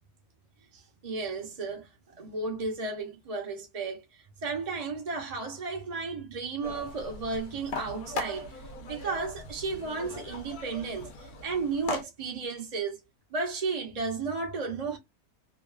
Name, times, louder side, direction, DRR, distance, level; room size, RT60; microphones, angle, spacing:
voice 1, 0.7-1.9 2.2-4.0 4.4-8.5 8.9-11.1 11.4-13.0 13.3-15.0, right 4 dB, 35° right, 0.6 m, -33 dB
sound 1, 6.6-12.0, left 3 dB, 85° left, 1.2 m, -39 dB
3.0 x 2.3 x 2.3 m
omnidirectional pair, 1.5 m